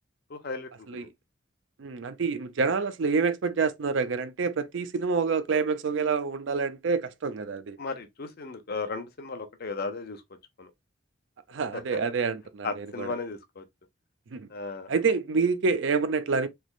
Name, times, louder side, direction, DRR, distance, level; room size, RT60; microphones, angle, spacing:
voice 1, 0.3-1.1 7.8-10.2 10.6-10.7 11.7-12.0 12.6-13.6 14.5-14.9, left 4 dB, 55° left, 0.7 m, -35 dB
voice 2, 1.8-7.8 11.5-13.1 14.3-14.5 14.9-16.5, right 5 dB, 65° right, 0.5 m, -27 dB
3.3 x 3.0 x 2.4 m
head